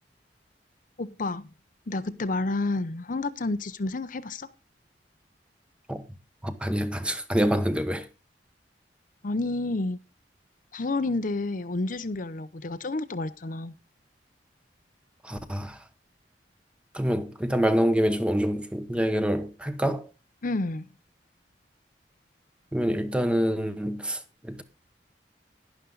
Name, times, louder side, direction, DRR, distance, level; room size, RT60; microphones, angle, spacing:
voice 1, 1.0-1.5 1.9-4.5 9.2-10.0 10.7-13.7 20.4-20.9, left 2 dB, 50° left, 0.7 m, -30 dB
voice 2, 6.4-8.1 15.2-15.8 16.9-20.1 22.7-24.6, equal, 5° right, 1.0 m, -26 dB
11.5 x 11.0 x 3.9 m
head